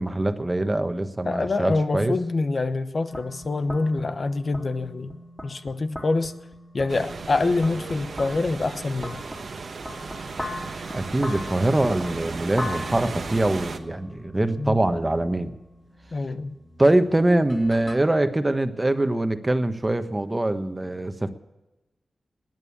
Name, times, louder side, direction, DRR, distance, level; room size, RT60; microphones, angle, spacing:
voice 1, 0.0-2.2 10.9-15.5 16.8-21.3, right 1 dB, 20° right, 8 dB, 1.3 m, -23 dB
voice 2, 1.2-5.2 5.4-6.3 6.7-9.2 14.6-14.8 16.1-16.5, left 3 dB, 55° left, 11 dB, 1.0 m, -25 dB
sound 1, 3.1-18.0, left 1 dB, 10° left, 3.3 m, -40 dB
sound 2, 6.9-13.8, right 4 dB, 75° right, 1.1 m, -35 dB
20.0 x 9.3 x 7.3 m, 1.0 s
cardioid pair, 70°, 0 cm